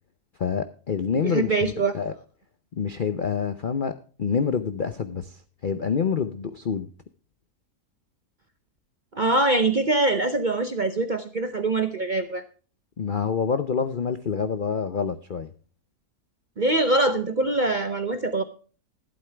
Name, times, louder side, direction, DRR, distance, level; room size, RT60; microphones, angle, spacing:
voice 1, 0.4-2.1 2.7-3.9 4.2-6.9 13.0-15.5, left 6 dB, 55° left, 10 dB, 0.5 m, -27 dB
voice 2, 1.2-1.9 9.1-12.4 16.6-18.4, right 2 dB, 45° right, 9 dB, 0.6 m, -23 dB
12.0 x 11.5 x 3.3 m, 0.39 s
omnidirectional pair, 1.7 m